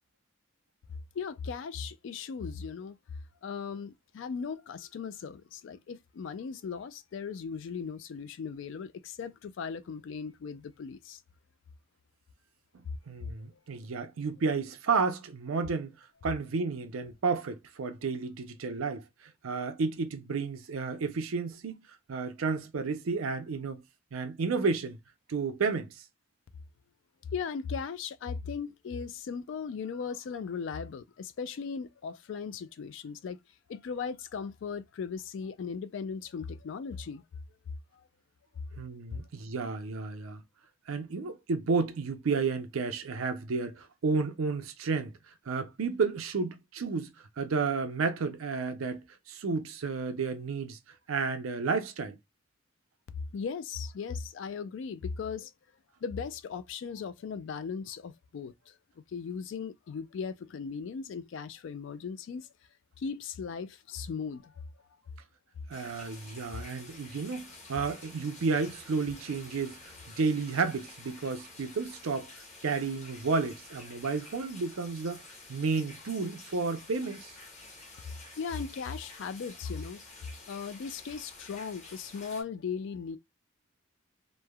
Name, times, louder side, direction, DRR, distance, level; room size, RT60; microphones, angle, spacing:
voice 1, 1.1-3.0 3.4-11.2 27.3-33.4 33.7-37.2 37.9-38.0 39.1-39.2 53.3-55.5 56.0-58.7 59.1-62.5 63.0-64.5 78.4-83.2, left 6 dB, 65° left, 0.3 m, -38 dB
voice 2, 12.7-15.9 16.2-21.8 22.1-23.8 24.1-25.0 25.3-26.0 38.8-40.4 40.9-45.1 45.5-50.8 51.1-52.2 65.7-72.3 72.6-75.2 75.5-77.3, right 4 dB, 85° right, 0.5 m, -32 dB
sound 1, 65.7-82.4, left 2 dB, 35° left, 0.9 m, -50 dB
3.1 x 2.1 x 2.2 m
head